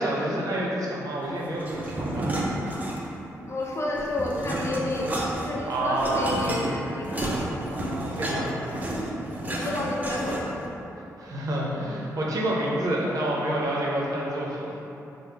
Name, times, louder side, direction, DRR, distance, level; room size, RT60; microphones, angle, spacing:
voice 1, 0.0-2.3 5.7-6.4 7.7-8.8 11.2-14.7, right 1 dB, 65° right, -4 dB, 0.7 m, -28 dB
sound 1, 1.6-3.3 3.6-10.7, right 1 dB, 25° right, 0.5 m, -31 dB
voice 2, 3.5-5.1 5.4-7.2 9.5-10.6, left 2 dB, 45° left, -3 dB, 0.6 m, -30 dB
3.5 x 2.1 x 3.3 m, 2.9 s
cardioid pair, 65°, 7 cm